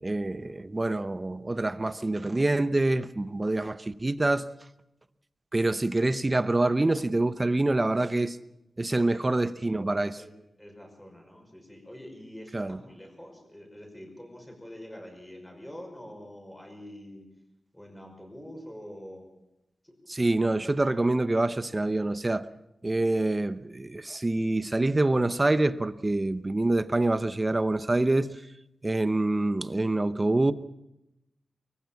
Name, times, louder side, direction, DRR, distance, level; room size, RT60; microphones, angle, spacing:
voice 1, 0.0-4.5 5.5-8.4 8.8-10.2 12.5-12.8 20.1-22.5 22.8-28.4 28.8-30.5, right 2 dB, 25° right, 0.8 m, -26 dB
voice 2, 10.6-17.3 17.7-19.3 19.8-19.9, equal, 10° left, 5.7 m, -45 dB
23.5 x 15.5 x 7.2 m
wide cardioid pair, 95°, 0 cm